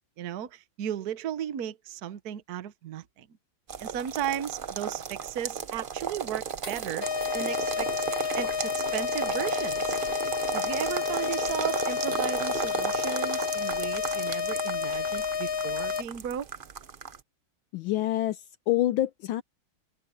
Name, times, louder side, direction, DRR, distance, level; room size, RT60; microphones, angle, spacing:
voice 1, 0.2-3.3 3.8-7.1 7.3-8.0 8.3-10.0 10.5-16.5, right 10 dB, 55° right, 1.4 m, -35 dB
sound 1, 3.7-17.2, right 7 dB, 90° right, 0.4 m, -34 dB
sound 2, 6.2-7.4 8.2-8.5, right 3 dB, 35° right, 5.6 m, -46 dB
sound 3, 7.0-16.0, left 7 dB, 45° left, 0.7 m, -30 dB
voice 2, 17.7-19.4, left 14 dB, 75° left, 1.4 m, -27 dB
open air
omnidirectional pair, 2.3 m